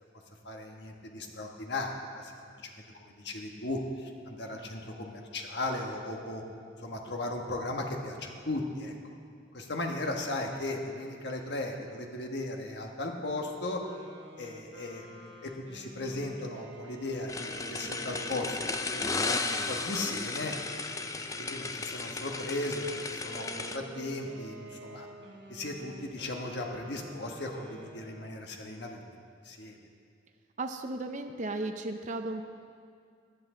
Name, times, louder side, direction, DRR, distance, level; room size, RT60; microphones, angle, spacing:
voice 1, 0.4-2.3 2.6-6.4 6.8-8.9 9.5-13.8 14.4-20.5 21.1-25.1 25.5-29.0 29.4-29.8, left 2 dB, 65° left, 2 dB, 1.4 m, -37 dB
sound 1, 13.7-20.8 21.3-28.5, right 1 dB, 65° right, 1.4 m, -49 dB
sound 2, 17.3-23.8, left 3 dB, 20° left, 0.5 m, -34 dB
voice 2, 30.6-32.5, right 2 dB, 40° right, 5 dB, 0.6 m, -35 dB
16.0 x 10.5 x 3.8 m, 2.2 s
head